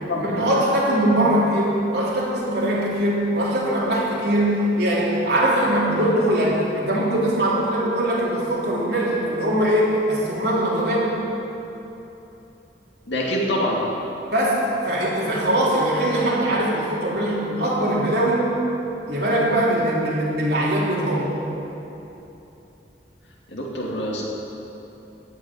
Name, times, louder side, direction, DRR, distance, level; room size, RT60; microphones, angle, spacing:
voice 1, 0.2-11.1 14.3-18.4 19.1-21.3, right 1 dB, 70° right, -6 dB, 3.4 m, -21 dB
voice 2, 13.1-13.8 23.5-24.2, left 1 dB, 90° left, -3 dB, 2.6 m, -25 dB
15.0 x 5.6 x 9.7 m, 3.0 s
head